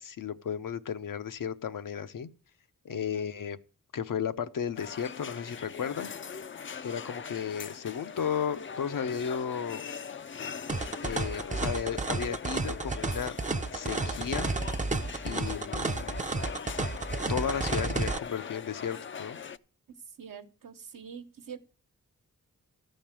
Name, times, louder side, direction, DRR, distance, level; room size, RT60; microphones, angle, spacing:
voice 1, 0.0-2.3 2.8-3.6 3.9-6.1 6.8-9.8 11.0-13.4 13.7-14.9 15.2-16.3 17.3-19.4, left 7 dB, 75° left, 0.8 m, -34 dB
voice 2, 2.9-3.3 19.9-21.6, right 7 dB, 75° right, 1.1 m, -45 dB
sound 1, 4.8-19.6, left 6 dB, 40° left, 0.5 m, -41 dB
sound 2, 10.7-18.2, right 3 dB, 25° right, 0.6 m, -32 dB
13.5 x 5.3 x 7.4 m
wide cardioid pair, 90°, 33 cm